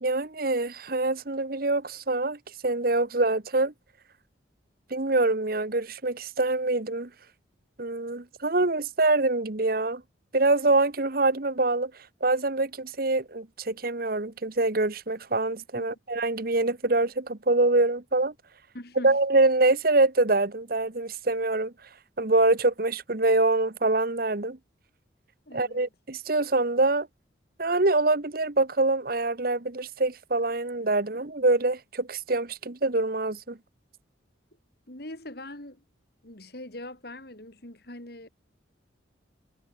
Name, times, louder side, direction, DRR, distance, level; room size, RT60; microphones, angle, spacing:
voice 1, 0.0-2.4 2.6-3.7 4.9-7.1 7.8-10.0 10.3-11.9 12.2-18.3 19.0-21.7 22.2-24.6 25.5-27.1 27.6-33.6, right 2 dB, 50° right, 1.2 m, -25 dB
voice 2, 18.7-19.2 25.5-25.8 34.9-35.8 36.2-38.3, left 1 dB, 55° left, 3.5 m, -42 dB
head